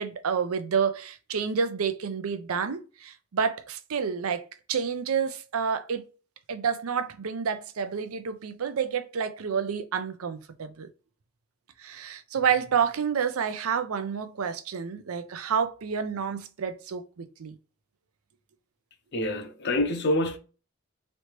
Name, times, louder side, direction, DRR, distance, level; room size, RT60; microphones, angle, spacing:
voice 1, 0.0-6.1 6.5-10.9 11.8-17.6, right 6 dB, 75° right, 0.5 m, -29 dB
voice 2, 19.1-20.4, left 1 dB, 50° left, 0.6 m, -26 dB
3.2 x 2.8 x 3.0 m
head